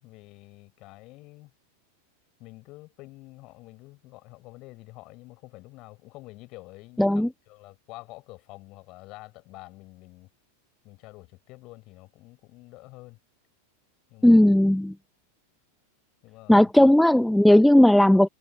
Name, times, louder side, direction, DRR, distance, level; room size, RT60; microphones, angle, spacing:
voice 1, 0.0-1.5 2.4-10.3 10.8-13.2 14.1-14.5 16.2-16.7, left 21 dB, 40° left, 4.7 m, -47 dB
voice 2, 7.0-7.3 14.2-14.9 16.5-18.3, left 1 dB, ahead, 0.3 m, -16 dB
figure-of-eight pair, 90°, 0 cm